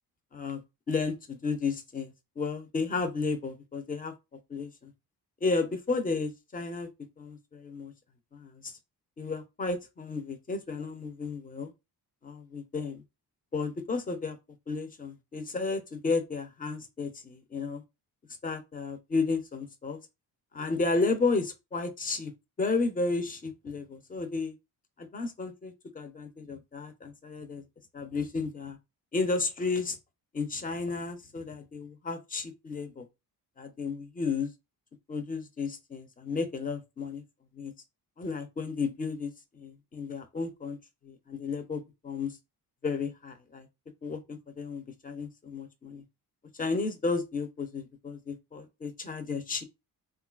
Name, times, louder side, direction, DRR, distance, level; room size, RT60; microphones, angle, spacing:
voice 1, 0.9-4.1 4.5-4.9 5.4-6.9 7.2-7.9 8.3-8.7 9.2-11.7 12.2-13.0 13.5-14.4 14.7-17.8 18.4-20.0 20.5-22.3 22.6-24.5 25.0-27.6 27.9-28.8 29.1-30.0 30.3-33.1 33.6-34.5 35.1-37.2 37.5-37.7 38.2-40.8 41.0-42.4 42.8-43.7 44.0-46.0 46.6-49.6, left 4 dB, 20° left, 0.5 m, -33 dB
3.6 x 2.3 x 2.3 m
cardioid pair, 130°, 40 cm